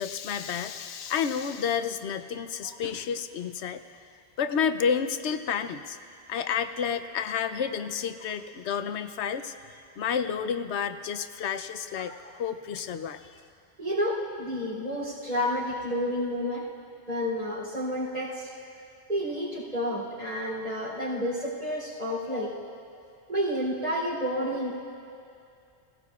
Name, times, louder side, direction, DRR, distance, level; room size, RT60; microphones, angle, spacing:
voice 1, 0.0-3.8 4.4-6.0 6.3-9.5 10.0-13.2, left 7 dB, 75° left, 10 dB, 0.9 m, -30 dB
voice 2, 13.8-16.6 17.1-18.5 19.1-22.5 23.3-24.8, equal, 40° right, -11 dB, 3.3 m, -30 dB
25.5 x 17.5 x 2.4 m, 2.5 s
omnidirectional pair, 1.2 m